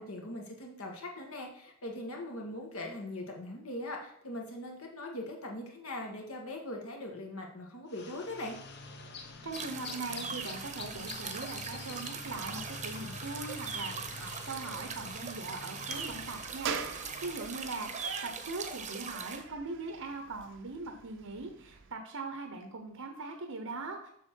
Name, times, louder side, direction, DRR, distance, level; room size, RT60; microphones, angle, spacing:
voice 1, 0.0-8.6, left 1 dB, 75° left, 1 dB, 1.8 m, -41 dB
sound 1, 7.9-17.8, left 4 dB, 50° left, 1.0 m, -46 dB
voice 2, 9.2-24.1, right 3 dB, 80° right, 5 dB, 1.0 m, -41 dB
sound 2, 9.5-19.4, right 5 dB, 35° right, 0.9 m, -41 dB
sound 3, 15.9-21.9, right 6 dB, 60° right, 0.7 m, -43 dB
7.5 x 6.4 x 4.6 m, 0.71 s
head